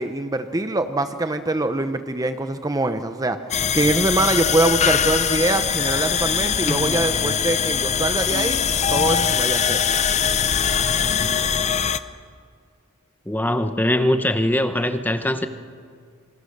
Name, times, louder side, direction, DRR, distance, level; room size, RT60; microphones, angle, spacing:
voice 1, 0.0-8.6 8.9-9.8, right 2 dB, 15° right, 9 dB, 0.7 m, -23 dB
sound 1, 3.5-12.0, left 7 dB, 30° left, 0.7 m, -22 dB
voice 2, 13.3-15.5, left 1 dB, 10° left, 9 dB, 0.9 m, -21 dB
27.0 x 25.0 x 6.7 m, 2.2 s
head